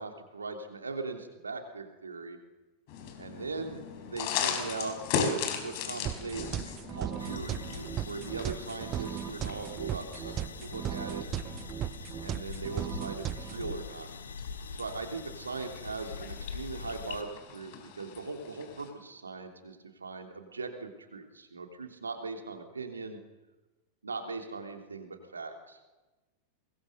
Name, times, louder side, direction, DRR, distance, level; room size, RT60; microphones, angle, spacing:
voice 1, 0.0-2.4 3.2-3.8 4.1-11.2 12.2-14.1 14.7-23.2 24.0-25.8, right 4 dB, 75° right, 5 dB, 3.1 m, -40 dB
sound 1, 2.9-18.9, left 7 dB, 45° left, 4.3 m, -39 dB
sound 2, 6.1-13.7, right 10 dB, 30° right, 0.9 m, -37 dB
sound 3, 7.2-17.2, left 5 dB, 70° left, 1.7 m, -44 dB
23.5 x 21.0 x 6.7 m, 1.1 s
figure-of-eight pair, 90°, 0 cm